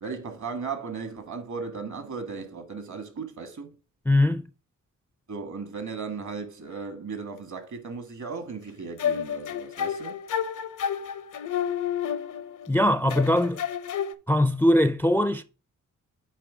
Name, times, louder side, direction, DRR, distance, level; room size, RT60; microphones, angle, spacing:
voice 1, 0.0-3.7 5.3-10.2, right 5 dB, 65° right, 1.7 m, -36 dB
voice 2, 4.1-4.4 12.7-13.6 14.3-15.4, left 1 dB, 5° left, 0.4 m, -21 dB
sound 1, 9.0-12.7 13.1-14.1, left 8 dB, 70° left, 0.7 m, -30 dB
8.6 x 3.3 x 4.9 m
cardioid pair, 80°, 32 cm